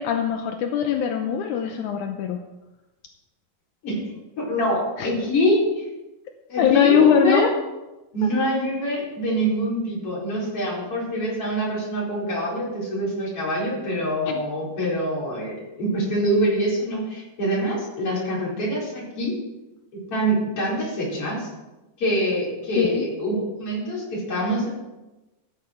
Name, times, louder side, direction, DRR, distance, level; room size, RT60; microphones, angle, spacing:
voice 1, 0.0-2.4 5.0-5.1 6.6-7.5 8.2-8.3 14.3-14.4 22.8-23.1, left 8 dB, 75° left, 4 dB, 2.1 m, -21 dB
voice 2, 4.4-5.8 6.5-7.5 8.1-19.3 20.1-21.5 22.0-24.7, equal, 40° left, -5 dB, 5.4 m, -25 dB
14.0 x 10.5 x 4.4 m, 1.0 s
omnidirectional pair, 3.9 m